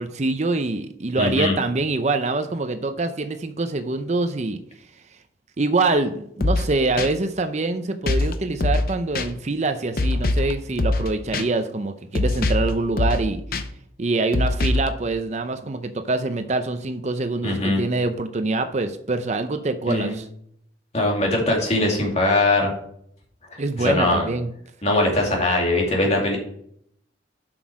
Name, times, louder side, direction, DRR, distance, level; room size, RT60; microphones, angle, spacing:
voice 1, 0.0-4.6 5.6-13.4 14.0-20.3 23.6-24.5, right 3 dB, 40° right, 8 dB, 0.6 m, -25 dB
voice 2, 1.2-1.6 17.4-17.8 19.9-20.1 20.9-22.7 23.5-24.3 24.8-26.4, left 2 dB, 35° left, -1 dB, 2.4 m, -21 dB
sound 1, 6.4-6.7 7.0-7.1 8.1-8.3 8.6-8.9 9.2-9.3 10.0-10.5 10.8-11.1 11.3-11.4 12.2-12.7 13.0-13.2 13.5-13.6 14.3-14.9, left 2 dB, 50° left, 0.7 m, -22 dB
7.6 x 6.2 x 4.8 m, 0.69 s
head